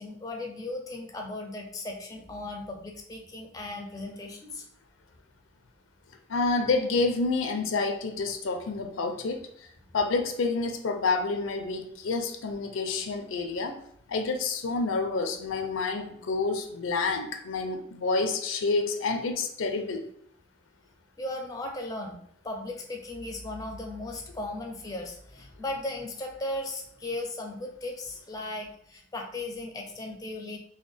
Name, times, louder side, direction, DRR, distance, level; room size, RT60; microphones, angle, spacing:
voice 1, 0.0-4.6 21.2-30.6, left 2 dB, 20° left, 2 dB, 0.4 m, -37 dB
voice 2, 6.3-9.4 9.9-13.8 14.1-20.0, left 3 dB, 90° left, 6 dB, 0.5 m, -28 dB
4.0 x 2.1 x 3.3 m, 0.67 s
head